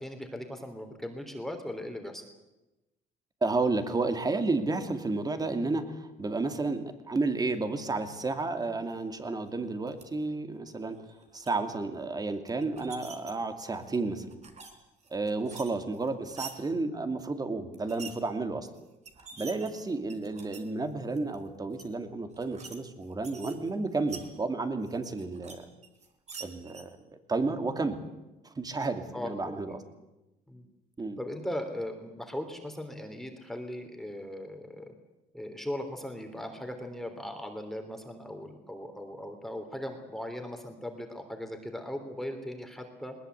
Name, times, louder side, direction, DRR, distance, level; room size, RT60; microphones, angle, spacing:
voice 1, 0.0-2.2 15.4-15.6 29.1-29.7 30.5-30.6 31.2-34.9 35.3-43.1, left 1 dB, ahead, 4 dB, 3.2 m, -38 dB
voice 2, 3.4-11.0 11.3-14.4 15.1-18.7 19.4-25.7 26.4-28.0 28.4-29.7 31.0-31.2, right 3 dB, 25° right, 7 dB, 2.5 m, -31 dB
sound 1, 9.9-10.0 10.9-11.5 12.5-13.3 13.8-14.7 15.0-16.5 17.7-18.1 18.7-18.8 19.0-20.6 21.1-21.4 21.7-21.8 22.3-22.8 23.0-24.3 24.8-25.5 25.8-26.8, right 5 dB, 40° right, 3.8 m, -46 dB
21.0 x 20.0 x 8.1 m, 1.0 s
cardioid pair, 110°, 17 cm